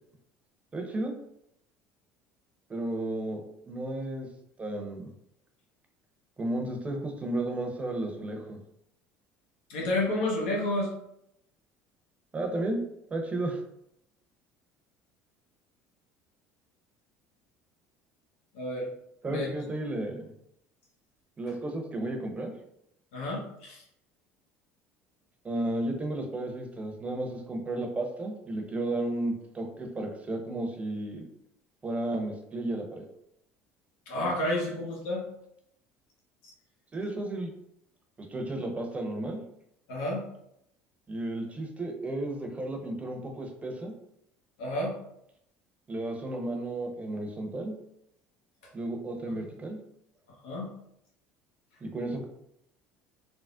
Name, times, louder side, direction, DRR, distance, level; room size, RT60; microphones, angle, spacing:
voice 1, 0.7-1.1 2.7-4.3 4.6-5.1 6.4-8.6 12.3-12.8 13.1-13.6 19.2-20.3 21.4-22.5 25.4-31.2 31.8-33.0 36.9-37.5 38.2-39.4 41.1-43.9 45.9-47.7 48.7-49.8 51.8-52.3, right 2 dB, 25° right, 3 dB, 0.7 m, -33 dB
voice 2, 9.7-10.9 18.5-18.9 19.3-19.5 23.1-23.8 34.1-35.2 39.9-40.3 44.6-45.0 49.3-49.4 50.4-50.7, left 1 dB, 80° left, -2 dB, 0.8 m, -30 dB
3.5 x 2.0 x 2.4 m, 0.76 s
hypercardioid pair, 80°, 6 cm